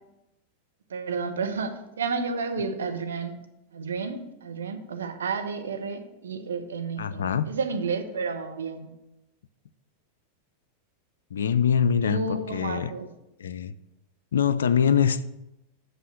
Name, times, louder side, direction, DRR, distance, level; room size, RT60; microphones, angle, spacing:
voice 1, 0.9-3.4 3.7-8.9 12.0-13.1, right 4 dB, 65° right, 6 dB, 0.8 m, -31 dB
voice 2, 7.0-7.5 11.3-12.9 13.4-13.8 14.3-15.3, left 7 dB, 65° left, 12 dB, 0.3 m, -24 dB
6.2 x 5.4 x 6.5 m, 0.90 s
figure-of-eight pair, 90°, 0 cm